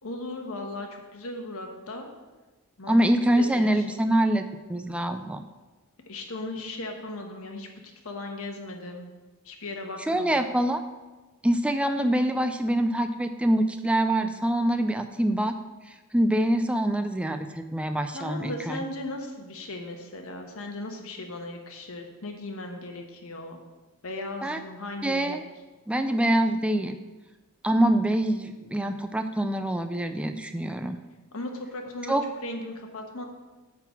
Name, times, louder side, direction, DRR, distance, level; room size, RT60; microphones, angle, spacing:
voice 1, 0.0-2.1 2.8-3.0 3.3-4.0 6.1-7.7 8.0-9.1 9.4-10.4 18.1-23.6 24.0-25.4 31.3-33.2, left 2 dB, 65° left, 3 dB, 1.3 m, -37 dB
voice 2, 2.9-5.4 10.0-10.8 11.4-15.6 16.1-18.8 24.4-24.6 25.0-25.4 25.9-27.0 27.6-31.0 32.1-32.2, right 1 dB, 5° right, 8 dB, 0.3 m, -25 dB
8.9 x 4.0 x 7.2 m, 1.2 s
head